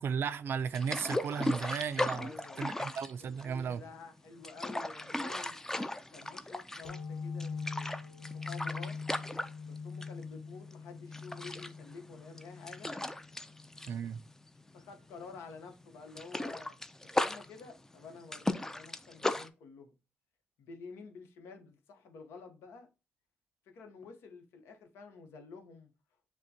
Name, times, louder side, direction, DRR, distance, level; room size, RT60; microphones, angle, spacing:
voice 1, 0.0-2.3 2.6-3.8 13.9-14.2, right 6 dB, 60° right, 0.4 m, -35 dB
sound 1, 0.7-3.8 4.3-7.1 7.4-10.2 10.6-10.7 11.1-14.9 15.2-15.4 15.7-19.5, left 1 dB, 10° left, 0.4 m, -36 dB
voice 2, 2.1-2.7 3.2-5.6 6.1-7.9 8.3-9.0 9.6-12.9 14.7-19.9 20.6-22.9 23.7-25.9, left 4 dB, 80° left, 0.9 m, -50 dB
sound 2, 6.9-14.2, left 5 dB, 40° left, 0.9 m, -43 dB
6.5 x 2.2 x 2.8 m
supercardioid pair, 65°, 4 cm